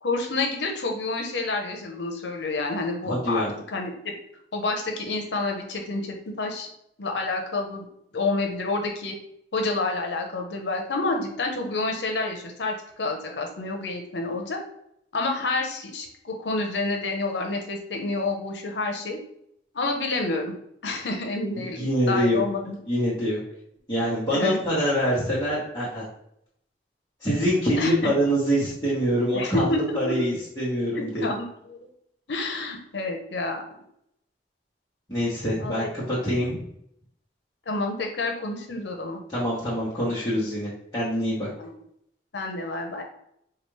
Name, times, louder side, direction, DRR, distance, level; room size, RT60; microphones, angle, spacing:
voice 1, 0.0-4.2 4.5-6.7 7.0-7.9 8.1-9.1 9.5-14.6 15.1-19.2 19.7-20.5 20.8-22.8 24.3-24.6 27.8-28.1 29.3-30.1 31.0-31.9 32.3-33.6 35.6-35.9 37.7-39.2 41.6-41.7 42.3-43.0, left 3 dB, 80° left, 2 dB, 0.8 m, -29 dB
voice 2, 3.0-3.5 21.8-22.4 22.9-23.4 23.9-26.1 27.2-31.2 35.1-36.6 39.3-41.5, equal, 15° left, -10 dB, 1.1 m, -25 dB
4.9 x 2.4 x 3.2 m, 0.74 s
head